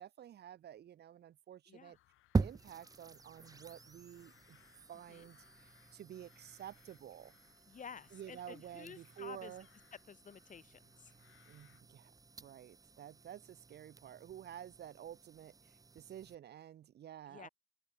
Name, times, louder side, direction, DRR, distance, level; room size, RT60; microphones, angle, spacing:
voice 1, 0.0-2.0 2.4-4.6 4.9-5.4 5.9-7.3 8.1-9.7 11.5-12.1 12.4-17.5, right 10 dB, 55° right, 0.7 m, -51 dB
sound 1, 1.9-11.8, left 15 dB, 90° left, 3.6 m, -69 dB
sound 2, 2.3-16.3, right 4 dB, 20° right, 0.6 m, -44 dB
voice 2, 7.7-9.5 10.1-11.1 17.3-17.5, left 7 dB, 40° left, 1.2 m, -52 dB
open air
cardioid pair, 90°, 20 cm